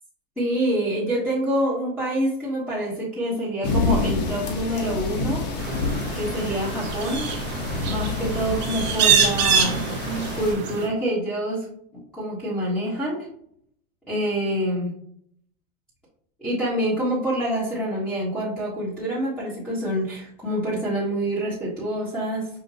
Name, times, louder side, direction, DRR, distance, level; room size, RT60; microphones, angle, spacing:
voice 1, 0.4-5.4 6.1-7.2 7.8-9.8 10.4-11.7 11.9-13.3 14.1-14.9 16.4-22.5, right 1 dB, ahead, -10 dB, 1.4 m, -26 dB
sound 1, 3.6-10.5, left 3 dB, 35° left, 1.1 m, -28 dB
sound 2, 5.6-10.9, right 6 dB, 35° right, 1.1 m, -25 dB
5.8 x 2.5 x 2.9 m, 0.69 s
supercardioid pair, 145°, 30 cm